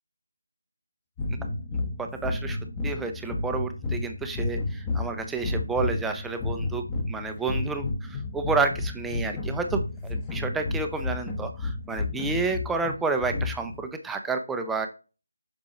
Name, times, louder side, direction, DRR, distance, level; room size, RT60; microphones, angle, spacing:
sound 1, 1.2-13.9, left 2 dB, 10° left, 1.0 m, -31 dB
voice 1, 2.0-2.6 2.8-14.9, right 4 dB, 5° right, 5 dB, 0.5 m, -30 dB
7.2 x 6.2 x 2.8 m, 0.33 s
figure-of-eight pair, 160°, 0 cm